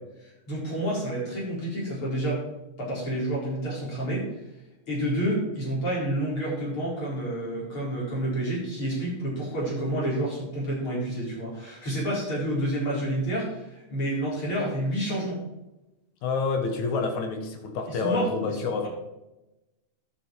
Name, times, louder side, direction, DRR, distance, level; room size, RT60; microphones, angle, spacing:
voice 1, 0.5-2.4 2.8-4.3 4.9-15.4 17.9-18.9, right 1 dB, 45° left, -6 dB, 5.3 m, -29 dB
voice 2, 16.2-18.9, left 4 dB, 75° left, 4 dB, 2.7 m, -28 dB
10.5 x 8.5 x 4.6 m, 0.97 s
omnidirectional pair, 3.4 m